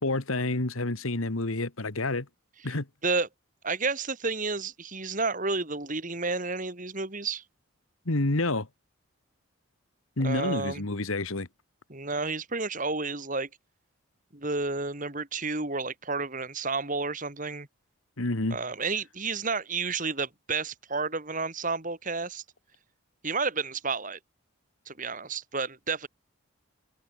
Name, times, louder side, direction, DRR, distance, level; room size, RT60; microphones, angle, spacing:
voice 1, 0.0-2.3 2.6-2.9 8.0-8.7 10.2-11.5 18.2-18.6, left 2 dB, 75° left, 1.8 m, -28 dB
voice 2, 3.6-7.4 10.2-10.8 11.9-13.5 14.3-17.7 18.5-22.4 23.2-24.2 24.9-26.1, right 4 dB, 35° right, 2.3 m, -31 dB
head